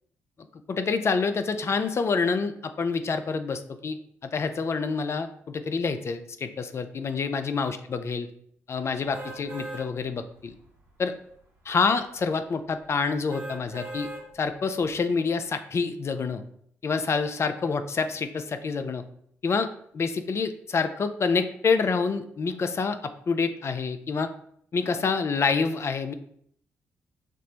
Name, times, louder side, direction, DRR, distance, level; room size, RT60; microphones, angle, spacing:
voice 1, 0.7-4.0 4.2-8.3 8.7-10.5 11.0-11.1 11.7-14.1 14.3-16.4 16.8-19.0 19.4-19.7 19.9-24.3 24.7-26.1, left 5 dB, 40° left, 9 dB, 0.4 m, -27 dB
sound 1, 9.1-9.8 10.4-10.5 13.3-14.2 14.8-14.9, right 2 dB, 85° right, 1.0 m, -38 dB
4.2 x 2.1 x 2.8 m, 0.66 s
hypercardioid pair, 40°, 7 cm